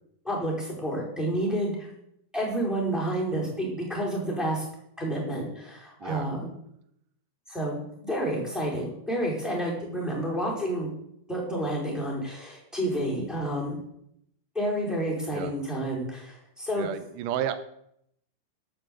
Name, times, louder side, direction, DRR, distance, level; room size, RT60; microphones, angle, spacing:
voice 1, 0.2-1.9 2.3-4.6 5.0-6.5 7.5-10.9 11.3-13.8 14.5-16.9, right 1 dB, ahead, -3 dB, 4.2 m, -30 dB
voice 2, 16.8-17.6, right 10 dB, 75° right, 11 dB, 2.0 m, -31 dB
12.0 x 7.7 x 7.8 m, 0.74 s
omnidirectional pair, 4.4 m